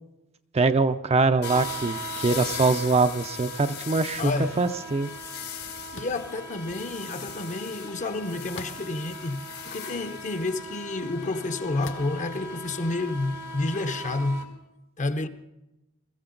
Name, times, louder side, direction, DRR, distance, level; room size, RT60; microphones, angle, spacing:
voice 1, 0.5-4.3 4.6-5.1, right 3 dB, 30° right, 0.5 m, -23 dB
sound 1, 1.4-14.4, left 2 dB, 85° left, 2.3 m, -38 dB
voice 2, 4.2-4.6 5.9-14.5 15.0-15.3, left 2 dB, 35° left, 0.7 m, -30 dB
sound 2, 5.9-6.3 8.5-9.1 9.8-9.9 11.8-12.2, left 4 dB, 60° left, 1.1 m, -42 dB
22.0 x 14.5 x 3.9 m
head